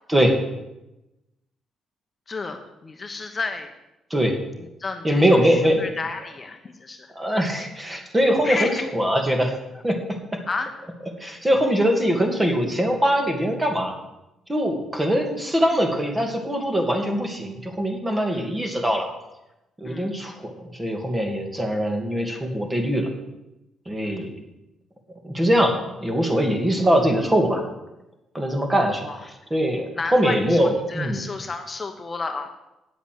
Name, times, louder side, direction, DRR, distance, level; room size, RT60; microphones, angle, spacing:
voice 1, 2.3-3.7 4.6-7.1 8.4-8.8 10.5-10.7 18.3-18.5 19.8-20.1 24.0-24.3 29.0-29.3 29.9-32.5, left 3 dB, 30° left, 5 dB, 1.1 m, -32 dB
voice 2, 5.0-5.8 7.2-9.5 9.8-10.4 11.2-13.9 14.5-19.1 19.8-23.1 23.9-24.3 25.2-27.6 28.3-29.1 29.5-31.2, equal, 15° right, 4 dB, 2.4 m, -22 dB
9.5 x 8.1 x 7.9 m, 0.95 s
cardioid pair, 90°, 0 cm